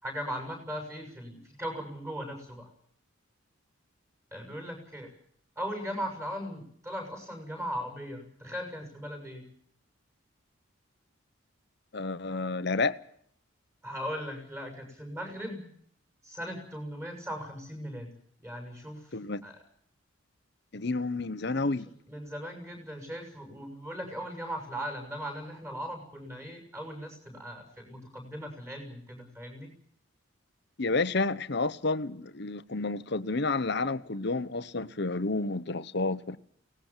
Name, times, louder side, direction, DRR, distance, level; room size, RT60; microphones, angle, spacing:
voice 1, 0.0-2.7 4.3-5.1 5.6-9.5 13.8-15.7 16.2-18.1 18.4-19.2 19.4-19.6 22.1-29.7, equal, 15° right, 6.9 m, -38 dB
voice 2, 11.9-13.0 19.1-19.4 20.7-21.9 30.8-36.4, left 3 dB, 55° left, 0.9 m, -30 dB
23.0 x 19.0 x 7.3 m
head